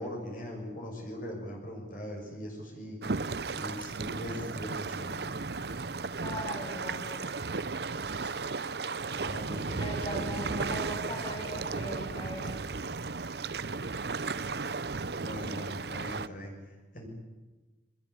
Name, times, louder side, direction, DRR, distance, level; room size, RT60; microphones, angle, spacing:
voice 1, 0.0-3.0 3.5-5.2 8.2-8.3 9.1-10.2 15.2-17.1, equal, 50° left, 0 dB, 6.7 m, -40 dB
sound 1, 3.0-16.3, right 4 dB, 65° right, 0.8 m, -35 dB
voice 2, 6.2-7.7 9.8-12.8, equal, 30° left, 0 dB, 7.1 m, -40 dB
24.0 x 21.0 x 9.8 m, 1.2 s
head